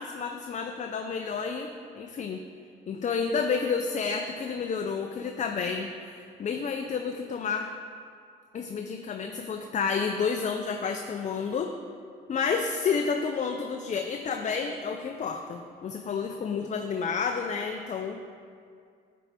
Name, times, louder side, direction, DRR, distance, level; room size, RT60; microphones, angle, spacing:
voice 1, 0.0-2.4 2.9-7.7 8.5-11.7 12.3-18.2, left 5 dB, 40° left, 5 dB, 0.4 m, -30 dB
9.1 x 4.6 x 4.1 m, 2.3 s
cardioid pair, 90°, 20 cm